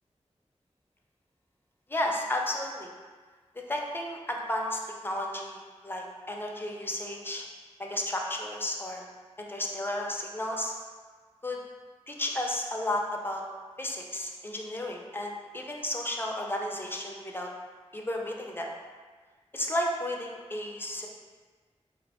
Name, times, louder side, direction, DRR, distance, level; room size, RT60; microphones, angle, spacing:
voice 1, 1.9-2.9 3.7-7.5 7.8-9.0 9.4-10.7 11.4-11.6 12.1-13.4 13.8-17.5 17.9-18.7 19.5-21.1, left 1 dB, 20° left, 0 dB, 0.5 m, -33 dB
3.8 x 2.1 x 4.1 m, 1.4 s
wide cardioid pair, 75°, 12 cm